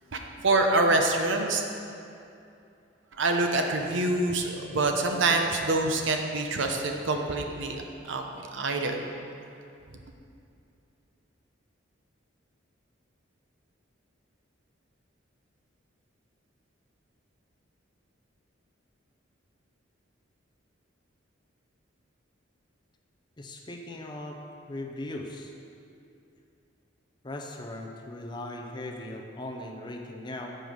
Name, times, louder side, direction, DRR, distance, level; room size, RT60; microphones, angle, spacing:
voice 1, 0.1-1.6 3.2-9.0, right 2 dB, 70° right, 4 dB, 0.8 m, -26 dB
voice 2, 23.4-24.4 24.7-25.5 27.2-30.6, left 1 dB, 20° left, 2 dB, 0.6 m, -38 dB
7.7 x 5.2 x 6.3 m, 2.6 s
head